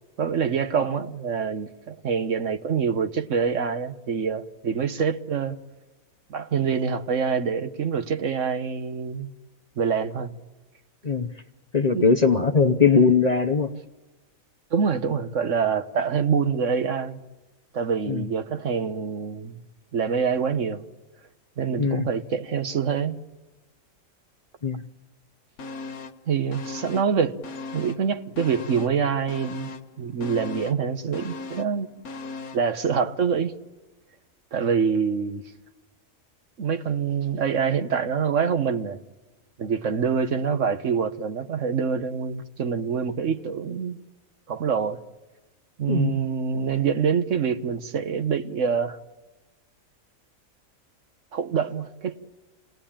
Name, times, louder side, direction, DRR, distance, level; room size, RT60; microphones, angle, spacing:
voice 1, 0.2-5.6 6.3-9.3 9.8-10.3 11.9-12.1 14.7-17.2 17.7-19.6 19.9-20.8 21.6-23.2 26.3-27.4 27.7-29.7 30.0-31.9 32.5-33.5 34.5-35.4 36.6-39.0 39.6-44.0 44.5-45.0 45.8-49.0 51.3-52.2, right 6 dB, 65° right, 1.3 m, -25 dB
voice 2, 11.7-13.7 18.1-18.2 21.8-22.1 24.6-24.8 45.9-46.2, left 5 dB, 35° left, 0.8 m, -20 dB
sound 1, 25.6-26.2 26.5-28.1 28.4-32.7 33.1-33.2, left 3 dB, 85° left, 1.6 m, -38 dB
28.0 x 19.0 x 8.8 m
omnidirectional pair, 1.4 m